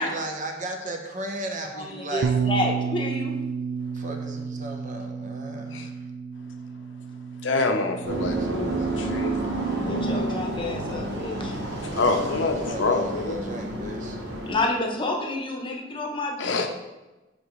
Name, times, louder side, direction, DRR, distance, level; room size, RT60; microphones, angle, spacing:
voice 1, 0.0-2.3 4.0-5.9 8.5-9.2 11.9-14.1, right 2 dB, 40° right, 3 dB, 0.8 m, -35 dB
voice 2, 1.7-3.4 9.8-11.5 11.8-12.0 14.4-16.5, left 2 dB, 25° left, 1 dB, 0.9 m, -29 dB
Bass guitar, 2.2-8.5, right 6 dB, 90° right, 0.4 m, -31 dB
voice 3, 7.4-9.6 11.8-13.5 16.4-16.7, left 3 dB, 70° left, 5 dB, 0.7 m, -26 dB
sound 1, 8.0-14.5, right 2 dB, 65° right, 1.3 m, -30 dB
7.3 x 5.2 x 3.1 m, 1.1 s
head